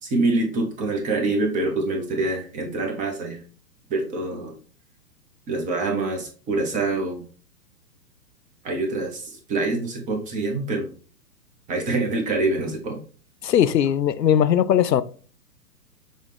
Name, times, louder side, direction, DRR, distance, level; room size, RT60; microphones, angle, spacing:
voice 1, 0.0-3.4 3.9-4.6 5.5-7.2 8.6-10.9 11.7-13.0, right 2 dB, 15° right, 0.9 m, -25 dB
voice 2, 13.4-15.0, left 9 dB, 85° left, 0.6 m, -19 dB
6.4 x 2.4 x 3.4 m
figure-of-eight pair, 120°, 48 cm